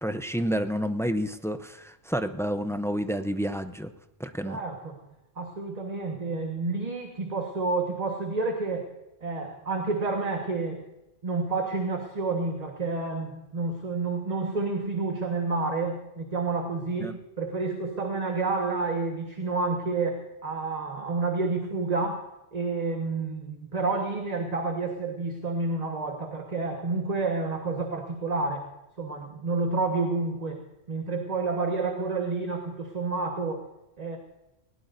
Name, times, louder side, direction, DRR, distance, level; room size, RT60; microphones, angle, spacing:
voice 1, 0.0-3.9 4.2-4.6 17.0-17.2, equal, 5° left, 9 dB, 0.4 m, -29 dB
voice 2, 4.4-4.9 5.4-8.9 9.2-10.8 11.2-22.3 22.5-28.7 29.0-30.6 30.9-33.6 34.0-34.2, right 3 dB, 35° right, 2 dB, 1.5 m, -29 dB
19.5 x 17.5 x 2.6 m, 0.96 s
omnidirectional pair, 1.1 m